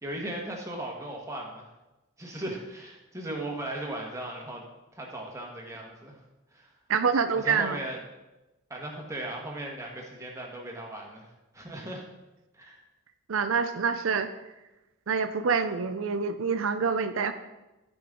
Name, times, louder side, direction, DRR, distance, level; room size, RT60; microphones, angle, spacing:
voice 1, 0.0-1.7 2.2-4.6 4.9-6.2 6.5-6.7 7.3-8.0 8.7-11.3 11.5-12.0 12.5-12.8, right 1 dB, 15° right, -1 dB, 1.5 m, -37 dB
voice 2, 6.9-7.8 13.3-14.3 15.1-17.3, right 5 dB, 85° right, 9 dB, 0.5 m, -26 dB
15.0 x 5.3 x 3.8 m, 1.0 s
head